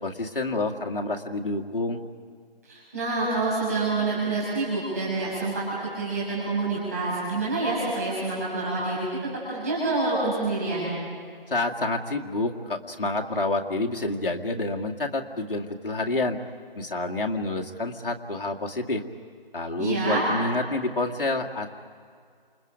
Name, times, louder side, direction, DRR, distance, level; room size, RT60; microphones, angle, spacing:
voice 1, 0.0-2.0 11.5-16.4 16.8-19.0 19.5-21.7, left 2 dB, 65° left, 0 dB, 2.1 m, -28 dB
voice 2, 2.7-9.1 9.5-10.9 19.8-20.2, right 3 dB, 15° right, -8 dB, 7.1 m, -27 dB
29.0 x 28.5 x 5.2 m, 2.2 s
figure-of-eight pair, 180°, 29 cm